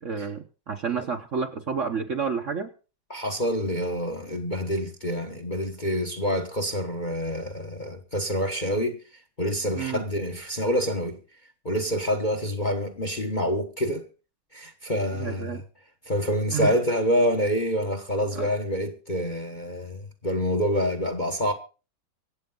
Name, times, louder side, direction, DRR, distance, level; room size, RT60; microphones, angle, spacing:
voice 1, 0.0-2.7 9.7-10.0 15.1-15.6 16.5-16.8 18.3-18.5, right 6 dB, 50° right, 1.1 m, -30 dB
voice 2, 3.1-9.0 9.4-11.2 11.6-14.1 14.5-15.6 16.1-21.5, equal, 30° left, 1.0 m, -27 dB
24.5 x 8.3 x 3.9 m
omnidirectional pair, 2.2 m